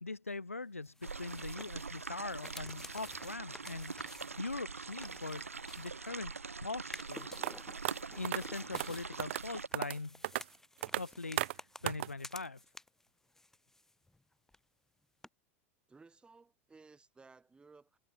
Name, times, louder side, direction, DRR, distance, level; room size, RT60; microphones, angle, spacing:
voice 1, 0.0-5.5 5.8-6.3 6.6-7.3 8.1-10.2 11.0-12.7, left 3 dB, 90° left, 0.6 m, -42 dB
sound 1, 0.8-6.3 6.8-13.1 13.4-14.2 14.5-14.6 15.2-15.3, left 2 dB, 5° left, 2.6 m, -53 dB
sound 2, 1.0-9.7, right 4 dB, 85° right, 0.7 m, -44 dB
sound 3, 7.4-7.5 7.8-7.9 8.2-8.4 8.7-8.9 9.2-9.4 9.7-10.0 10.2-10.4 10.8-11.0 11.4-11.5 11.9-12.1, right 16 dB, 60° right, 0.4 m, -34 dB
voice 2, 15.9-18.0, right 4 dB, 15° right, 4.5 m, -59 dB
figure-of-eight pair, 90°, 7 cm